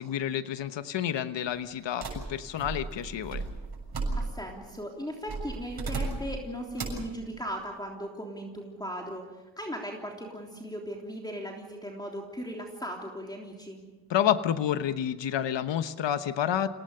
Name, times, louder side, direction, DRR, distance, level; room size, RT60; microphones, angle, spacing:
voice 1, 0.0-3.4 14.1-16.7, left 10 dB, 80° left, 11 dB, 1.2 m, -29 dB
sound 1, 2.0-4.6 5.3-6.4 6.8-7.1, right 3 dB, 55° right, 7.0 m, -35 dB
voice 2, 4.1-9.2 9.6-13.8, equal, 10° left, 0 dB, 3.4 m, -38 dB
28.0 x 18.5 x 6.8 m, 1.2 s
cardioid pair, 85°, 43 cm